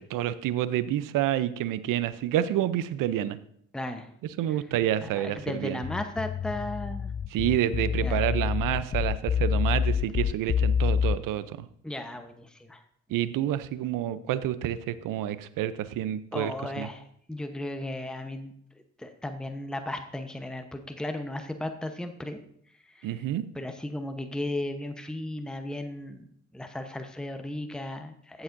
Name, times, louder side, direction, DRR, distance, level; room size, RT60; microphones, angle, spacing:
voice 1, 0.0-3.4 4.4-5.8 7.3-11.7 13.1-16.9 23.0-23.4, right 12 dB, 80° right, 15 dB, 0.6 m, -28 dB
voice 2, 3.7-4.1 5.1-7.1 8.0-8.2 11.8-12.8 16.3-18.5 19.0-22.4 23.0-23.1 23.5-26.2 26.5-28.4, left 1 dB, ahead, 7 dB, 0.9 m, -35 dB
sound 1, 5.8-11.2, left 7 dB, 25° left, 0.3 m, -27 dB
15.0 x 7.1 x 2.6 m, 0.68 s
supercardioid pair, 60°, 32 cm